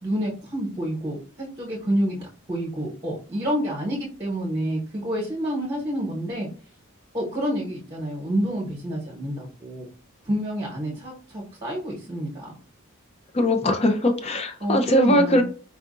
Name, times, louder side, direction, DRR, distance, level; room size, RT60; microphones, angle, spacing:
voice 1, 0.0-6.5 7.1-9.9 10.3-12.5 14.6-15.4, equal, 20° right, 1.1 m, -28 dB
voice 2, 13.3-15.4, left 1 dB, 30° left, 0.5 m, -20 dB
4.5 x 2.5 x 2.5 m
head